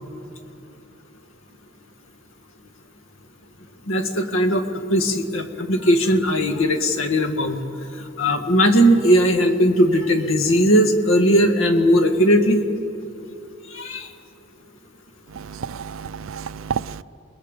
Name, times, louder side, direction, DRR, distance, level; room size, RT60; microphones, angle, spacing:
voice 1, 3.9-7.6 8.2-12.6 13.7-14.1, equal, 75° left, 1.7 m, -18 dB
voice 2, 15.4-17.0, right 7 dB, 75° right, 0.4 m, -30 dB
29.0 x 20.0 x 5.2 m
head